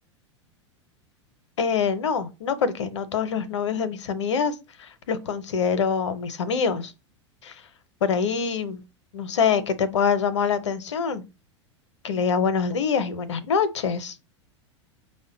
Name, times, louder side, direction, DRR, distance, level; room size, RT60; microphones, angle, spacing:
voice 1, 1.6-6.9 7.4-7.5 8.0-8.8 9.1-11.2 12.0-14.1, left 6 dB, 70° left, 0.6 m, -25 dB
5.1 x 2.1 x 3.7 m
figure-of-eight pair, 90°, 15 cm